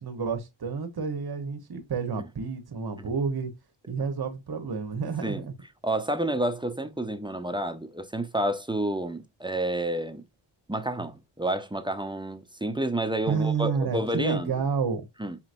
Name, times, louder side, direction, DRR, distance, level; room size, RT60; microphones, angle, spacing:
voice 1, 0.0-3.5 3.9-5.5 13.3-15.1, right 5 dB, 50° right, 1.1 m, -30 dB
voice 2, 5.8-10.2 10.7-14.5 15.2-15.4, right 1 dB, 10° right, 0.6 m, -29 dB
5.2 x 2.9 x 2.5 m
cardioid pair, 50°, 49 cm